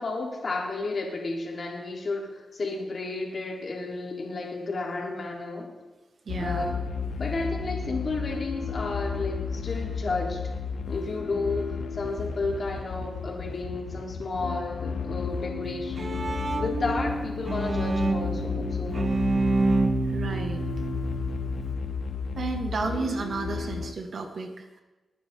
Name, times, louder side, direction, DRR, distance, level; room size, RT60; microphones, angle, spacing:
voice 1, 0.0-5.7 6.4-6.8 7.2-10.4 10.9-16.3 16.5-19.1, left 3 dB, 55° left, -2 dB, 3.9 m, -32 dB
sound 1, 6.3-23.9, left 5 dB, 80° left, 0.9 m, -33 dB
voice 2, 6.3-6.7 20.1-20.6 22.3-24.8, right 4 dB, 65° right, 4 dB, 2.0 m, -32 dB
Bowed string instrument, 15.6-21.7, right 3 dB, 45° right, 1.0 m, -28 dB
21.5 x 9.3 x 3.9 m, 1.1 s
cardioid pair, 65°, 0 cm